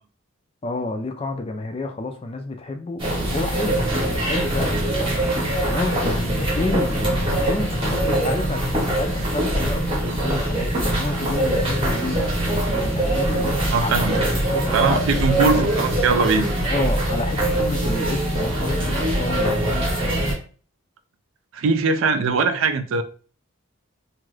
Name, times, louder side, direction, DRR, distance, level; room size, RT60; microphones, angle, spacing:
voice 1, 0.6-15.7 16.6-20.4, left 2 dB, 25° left, 0.3 m, -30 dB
sound 1, 3.0-20.3, right 1 dB, 25° right, 0.8 m, -23 dB
voice 2, 13.7-14.2 14.7-16.5 21.5-23.0, right 4 dB, 65° right, 0.3 m, -21 dB
2.7 x 2.4 x 3.1 m
head